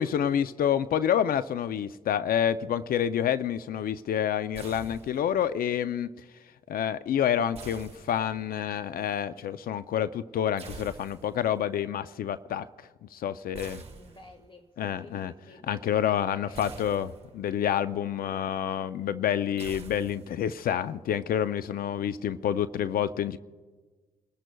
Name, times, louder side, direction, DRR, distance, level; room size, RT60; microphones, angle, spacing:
voice 1, 0.0-6.1 6.7-12.7 13.1-13.8 14.8-15.3 15.7-17.1 17.3-23.4, left 9 dB, 70° left, 13 dB, 0.5 m, -28 dB
sound 1, 4.5-5.5 7.5-8.6 10.6-11.5 13.5-14.6 16.5-17.5 19.6-20.6, right 5 dB, 40° right, 1.4 m, -46 dB
voice 2, 13.8-17.1, left 2 dB, 35° left, 6 dB, 1.6 m, -52 dB
28.5 x 14.0 x 2.3 m, 1.4 s
supercardioid pair, 55°, 15 cm